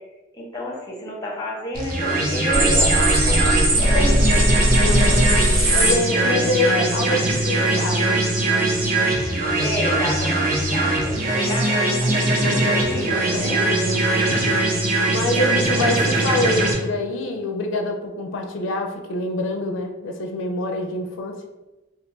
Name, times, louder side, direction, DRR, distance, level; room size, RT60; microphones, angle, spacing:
voice 1, 0.3-4.4 4.8-5.1 5.7-6.5 9.6-13.7 15.3-16.0, equal, 20° left, -1 dB, 0.6 m, -30 dB
sound 1, 1.7-16.7, right 2 dB, 45° right, 0.6 m, -21 dB
sound 2, 2.5-5.9, right 1 dB, 60° right, 1.0 m, -18 dB
voice 2, 4.8-8.2 12.4-14.7 15.1-21.4, left 2 dB, 75° left, 3 dB, 0.4 m, -26 dB
2.5 x 2.2 x 3.9 m, 1.1 s
head